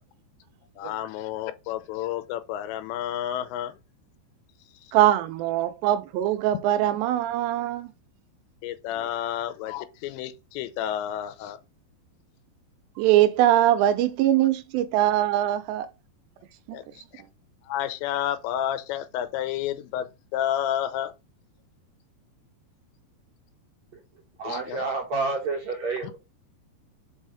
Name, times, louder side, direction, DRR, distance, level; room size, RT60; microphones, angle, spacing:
voice 1, 0.8-3.8 4.8-4.9 8.6-11.6 16.7-17.2 17.6-21.1 24.4-24.8 26.0-26.1, left 11 dB, 90° left, 3.0 m, -31 dB
voice 2, 4.9-7.9 13.0-15.9 16.7-16.8, right 13 dB, 90° right, 2.9 m, -22 dB
voice 3, 24.4-26.2, right 3 dB, 65° right, 1.7 m, -29 dB
5.6 x 5.4 x 5.0 m
omnidirectional pair, 5.0 m